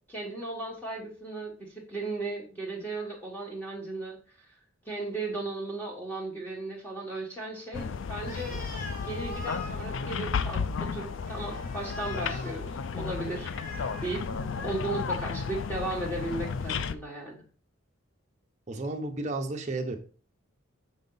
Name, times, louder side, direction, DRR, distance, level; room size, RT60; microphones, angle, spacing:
voice 1, 0.1-4.2 4.8-8.6 9.0-12.7 12.9-13.5 14.0-14.2 14.6-17.3, right 2 dB, 10° left, -3 dB, 1.6 m, -36 dB
sound 1, 7.7-16.9, left 5 dB, 60° left, 0.4 m, -33 dB
Animal, 8.2-14.9, left 2 dB, 40° left, 1.3 m, -43 dB
voice 2, 18.7-20.0, right 2 dB, 35° right, 4 dB, 0.9 m, -32 dB
6.3 x 5.3 x 3.9 m, 0.40 s
head